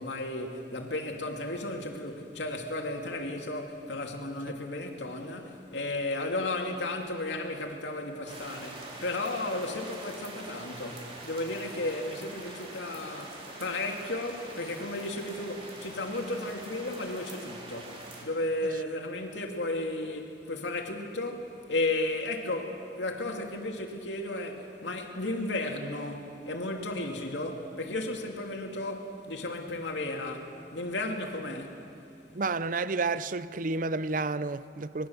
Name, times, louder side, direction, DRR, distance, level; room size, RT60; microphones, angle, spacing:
voice 1, 0.0-31.8, left 2 dB, 80° left, 2.6 m, -34 dB
sound 1, 8.3-18.2, right 2 dB, 30° right, 3.5 m, -44 dB
voice 2, 32.3-35.1, right 3 dB, 50° right, 0.6 m, -30 dB
26.0 x 21.0 x 7.2 m
head